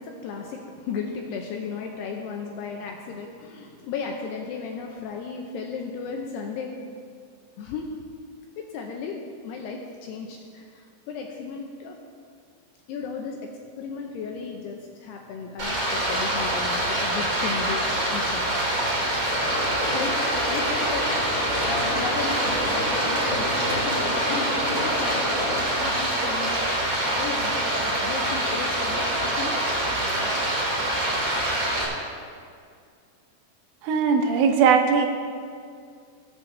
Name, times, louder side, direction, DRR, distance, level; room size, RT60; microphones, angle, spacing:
voice 1, 0.0-6.7 7.6-7.9 8.6-12.0 12.9-13.4 13.8-18.6 19.9-20.1 20.5-26.5 26.8-29.5, left 5 dB, 80° left, 1 dB, 2.4 m, -35 dB
Stream, 15.6-31.8, right 1 dB, 30° right, 1.5 m, -25 dB
sound 1, 19.3-25.6, left 1 dB, 45° left, 2.9 m, -31 dB
voice 2, 33.8-35.1, right 6 dB, 90° right, 4 dB, 3.5 m, -19 dB
20.5 x 8.2 x 3.3 m, 2.2 s
omnidirectional pair, 5.5 m